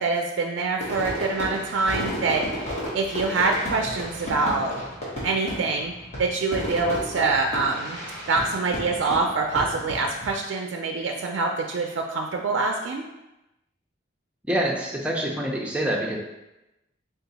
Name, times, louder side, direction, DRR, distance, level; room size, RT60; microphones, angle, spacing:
voice 1, 0.0-4.7 5.2-8.0 8.3-13.0, right 3 dB, 80° right, 2 dB, 0.3 m, -25 dB
Fireworks, 0.8-10.3, equal, 35° left, 1.2 m, -33 dB
voice 2, 14.5-16.2, right 1 dB, 5° right, -2 dB, 0.5 m, -26 dB
3.6 x 2.4 x 4.0 m, 0.98 s
head